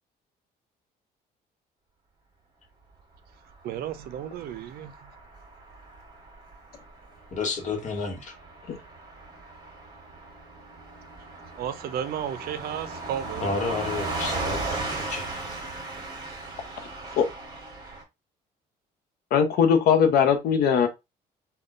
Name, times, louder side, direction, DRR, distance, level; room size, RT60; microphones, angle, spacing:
voice 1, 3.6-5.1 11.6-13.6, right 10 dB, 65° right, 0.5 m, -33 dB
Car passing by / Truck, 3.7-18.0, right 2 dB, 25° right, 1.3 m, -37 dB
voice 2, 7.3-8.3 13.4-15.3, left 4 dB, 45° left, 1.1 m, -31 dB
voice 3, 19.3-20.9, left 7 dB, 65° left, 0.6 m, -20 dB
3.6 x 2.2 x 2.4 m
cardioid pair, 110°, 17 cm